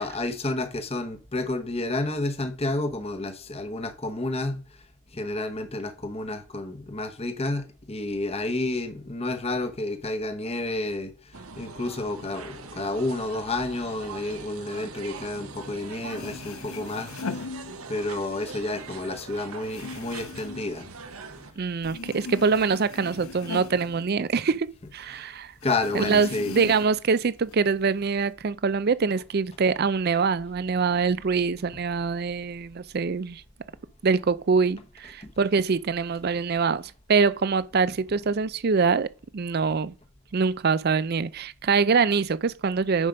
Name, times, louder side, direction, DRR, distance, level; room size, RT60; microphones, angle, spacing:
voice 1, 0.0-4.8 5.1-17.1 17.9-20.9 25.1-25.4 25.6-26.5 35.2-35.3, left 2 dB, 25° left, 1.0 m, -30 dB
sound 1, 11.3-21.5, right 4 dB, 80° right, 1.2 m, -42 dB
sound 2, 15.7-15.8 16.0-18.2 18.6-21.5 21.8-24.8 25.1-25.2 25.6-27.1 27.5-28.3, left 4 dB, 75° left, 0.7 m, -39 dB
voice 2, 21.6-24.7 24.9-25.5 25.9-33.4 34.0-39.9 40.3-43.1, right 5 dB, 45° right, 0.4 m, -24 dB
9.9 x 5.1 x 5.2 m
head